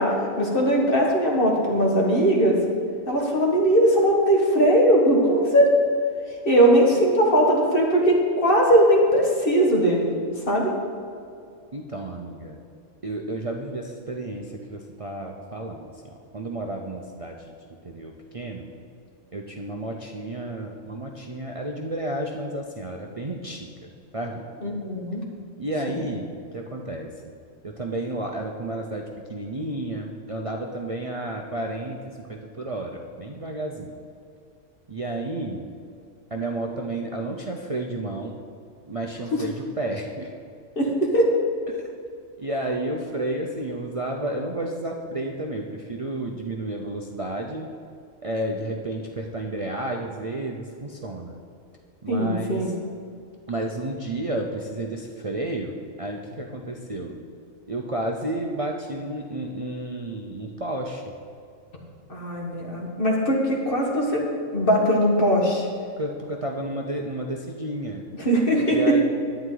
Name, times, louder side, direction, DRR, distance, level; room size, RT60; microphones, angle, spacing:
voice 1, 0.0-2.6 3.1-5.7 6.4-10.1 10.5-10.7 24.6-25.2 25.9-26.0 39.3-39.4 40.7-41.4 52.1-52.8 62.1-65.7 68.1-69.0, equal, 45° left, -1 dB, 1.7 m, -20 dB
voice 2, 11.7-12.6 13.0-17.3 17.8-18.7 19.3-23.7 24.1-24.4 25.6-27.3 27.6-29.0 29.3-34.0 34.9-35.7 36.3-38.3 38.9-40.3 41.8-41.9 42.4-47.7 48.2-51.4 52.0-52.7 53.5-57.2 57.7-61.0 66.0-68.1 68.7-69.0, right 1 dB, 40° right, 0 dB, 0.5 m, -31 dB
11.0 x 9.0 x 3.9 m, 2.4 s
omnidirectional pair, 1.4 m